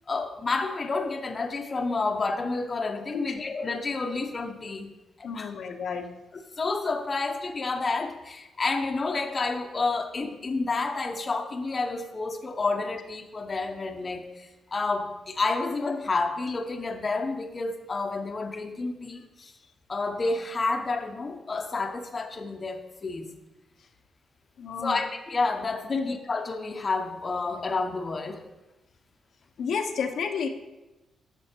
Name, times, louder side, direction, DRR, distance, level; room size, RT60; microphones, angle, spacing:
voice 1, 0.1-4.9 5.2-5.5 6.6-19.5 19.9-23.3 24.8-28.4, left 3 dB, 25° left, 4 dB, 0.8 m, -30 dB
voice 2, 5.2-6.1 24.6-25.0 25.9-26.1 29.6-30.5, left 6 dB, 60° left, 5 dB, 0.7 m, -31 dB
11.0 x 7.0 x 4.4 m, 1.1 s
wide cardioid pair, 165°, 0 cm